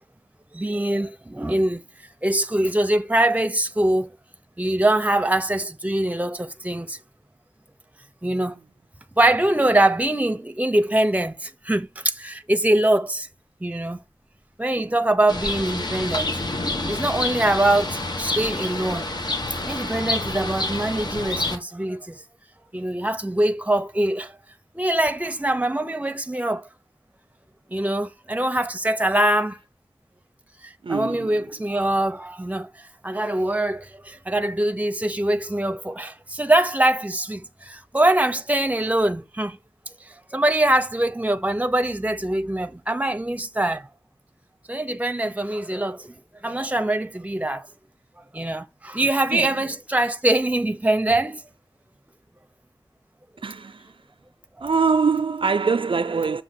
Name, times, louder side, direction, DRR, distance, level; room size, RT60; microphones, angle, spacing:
voice 1, 0.5-1.8 2.2-4.1 4.6-7.0 8.2-8.6 9.2-13.3 13.6-14.0 14.6-16.3 16.9-19.1 19.6-22.2 22.7-24.4 24.7-26.7 27.7-29.6 30.6-39.6 40.0-43.9 44.7-47.7 48.3-51.4 54.6-54.7, right 1 dB, 15° right, 0.8 m, -23 dB
Bird, 15.3-21.6, left 2 dB, 50° left, 1.4 m, -28 dB
voice 2, 30.8-31.3 49.3-49.6 53.4-53.9 54.6-56.4, right 5 dB, 65° right, 0.4 m, -23 dB
6.9 x 2.8 x 5.8 m
wide cardioid pair, 70°, 9 cm